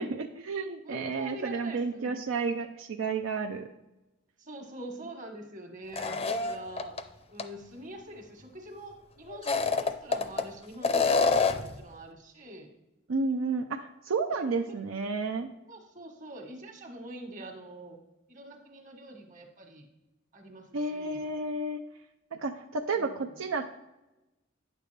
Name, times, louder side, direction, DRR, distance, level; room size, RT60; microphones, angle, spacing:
voice 1, 0.0-3.7 13.1-15.5 20.7-21.8 22.3-23.6, right 4 dB, 85° right, 5 dB, 0.5 m, -31 dB
voice 2, 0.8-2.2 4.4-6.9 7.3-12.7 14.3-14.4 15.7-18.0 18.3-19.8 20.3-21.2 22.9-23.4, right 1 dB, 40° right, 3 dB, 1.4 m, -44 dB
sound 1, 5.9-7.0 7.4-7.5 9.3-10.4 10.8-11.7, left 4 dB, 30° left, 0.5 m, -26 dB
9.3 x 6.7 x 3.3 m, 1.0 s
head